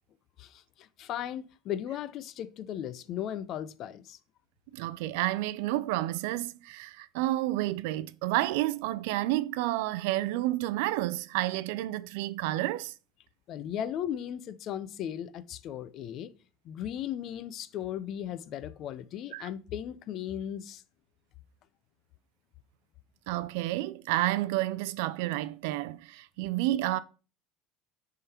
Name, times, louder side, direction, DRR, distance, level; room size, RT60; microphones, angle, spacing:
voice 1, 0.4-4.2 13.5-16.3 16.6-20.8, left 10 dB, 50° left, 0.5 m, -36 dB
voice 2, 4.7-12.9 19.3-19.5 23.3-27.0, right 16 dB, 80° right, 0.4 m, -30 dB
6.6 x 3.8 x 4.3 m
supercardioid pair, 120°, 0 cm